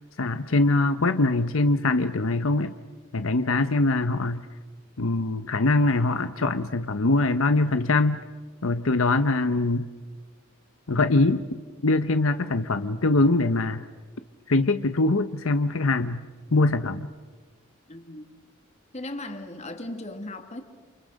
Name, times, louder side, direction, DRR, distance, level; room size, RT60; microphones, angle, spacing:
voice 1, 0.2-2.7 3.1-4.5 5.0-8.2 8.6-9.9 10.9-11.4 11.8-13.8 14.5-16.2 16.5-17.1, left 2 dB, 80° left, 10 dB, 0.9 m, -23 dB
voice 2, 17.9-18.4 18.9-20.6, left 1 dB, 35° left, 6 dB, 2.4 m, -37 dB
29.0 x 28.5 x 6.5 m, 1.4 s
head